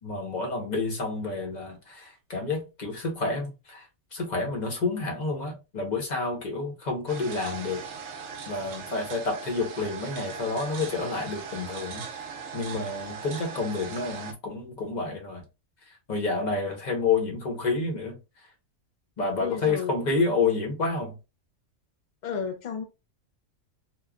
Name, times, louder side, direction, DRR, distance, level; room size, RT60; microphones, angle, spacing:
voice 1, 0.0-3.8 4.1-7.8 8.5-12.1 12.5-15.4 16.1-18.2 19.2-21.1, left 3 dB, 40° left, 0.8 m, -29 dB
sound 1, 7.1-14.3, right 6 dB, 65° right, 0.9 m, -39 dB
voice 2, 19.4-19.9 22.2-22.8, left 6 dB, 85° left, 0.4 m, -32 dB
3.0 x 2.1 x 2.3 m
omnidirectional pair, 1.4 m